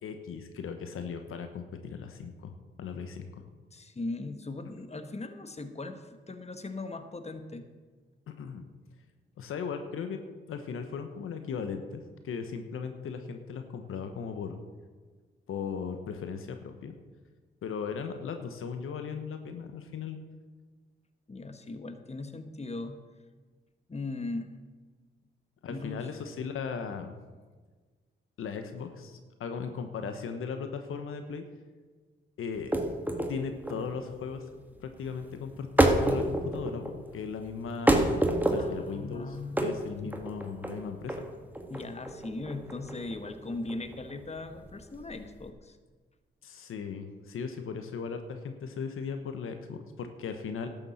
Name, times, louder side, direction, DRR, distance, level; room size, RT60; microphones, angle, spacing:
voice 1, 0.0-2.5 2.8-3.4 8.3-8.6 9.4-10.2 10.5-14.6 15.5-16.9 17.6-20.2 25.6-27.1 28.4-31.4 32.4-32.7 33.3-34.4 34.8-41.2 46.4-50.7, left 6 dB, 80° left, 7 dB, 1.1 m, -37 dB
voice 2, 3.7-7.7 21.3-23.0 23.9-24.6 25.7-26.1 38.6-40.1 41.7-45.8, left 2 dB, 30° left, 8 dB, 1.3 m, -39 dB
sound 1, 32.5-45.5, right 1 dB, 10° right, 1.8 m, -29 dB
12.0 x 7.1 x 7.0 m, 1.4 s
supercardioid pair, 50°, 21 cm